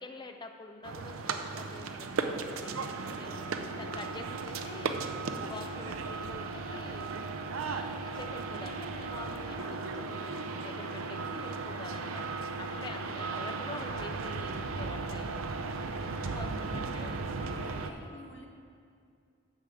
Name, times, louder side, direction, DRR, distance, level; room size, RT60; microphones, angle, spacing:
voice 1, 0.0-3.4 3.8-7.1 7.6-15.5 16.2-18.0, left 3 dB, 20° left, 5 dB, 0.4 m, -47 dB
sound 1, 0.8-17.9, right 4 dB, 75° right, 0.5 m, -36 dB
voice 2, 13.4-13.8 16.2-17.1 17.4-18.5, left 1 dB, 55° left, 2 dB, 1.0 m, -50 dB
9.3 x 4.9 x 6.9 m, 2.3 s
head